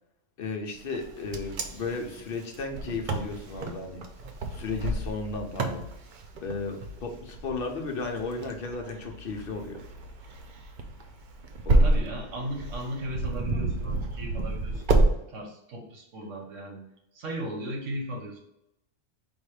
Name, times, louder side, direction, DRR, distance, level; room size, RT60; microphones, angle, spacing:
voice 1, 0.4-4.0 4.5-5.9 6.4-9.8 11.7-11.9, left 3 dB, 55° left, 3 dB, 0.9 m, -34 dB
Wind, 0.9-15.1, right 2 dB, 55° right, 0.6 m, -29 dB
voice 2, 11.7-14.9 15.3-16.8 17.1-18.4, right 1 dB, 85° right, 1 dB, 1.4 m, -36 dB
4.0 x 2.6 x 4.8 m, 0.80 s
omnidirectional pair, 1.2 m